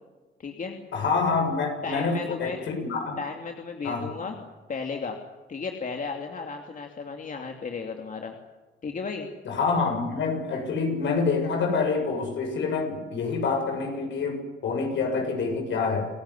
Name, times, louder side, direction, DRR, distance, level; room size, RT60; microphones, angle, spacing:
voice 1, 0.4-0.8 1.8-2.6 3.2-4.4 4.7-5.2 5.5-8.4 8.8-9.3, left 5 dB, 40° left, 3 dB, 2.7 m, -34 dB
voice 2, 0.9-3.2 3.8-4.1 9.5-16.1, left 4 dB, 70° left, 4 dB, 7.2 m, -27 dB
28.0 x 16.0 x 9.9 m, 1.3 s
cardioid pair, 90°, 20 cm